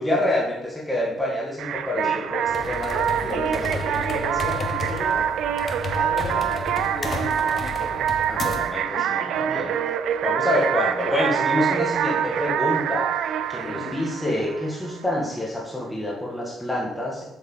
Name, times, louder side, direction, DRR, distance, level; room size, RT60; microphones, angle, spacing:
voice 1, 0.0-4.3 8.3-9.7 10.2-13.1 13.5-17.3, left 1 dB, 10° left, -4 dB, 1.9 m, -27 dB
sound 1, 1.6-15.0, right 9 dB, 80° right, 0.4 m, -25 dB
sound 2, 2.5-8.8, left 4 dB, 45° left, 0.8 m, -33 dB
voice 2, 3.2-5.3 5.6-8.1 9.2-9.6 10.4-10.6 13.6-14.0, left 2 dB, 70° left, -8 dB, 3.0 m, -35 dB
8.0 x 6.8 x 3.9 m, 0.94 s
cardioid pair, 90°, 0 cm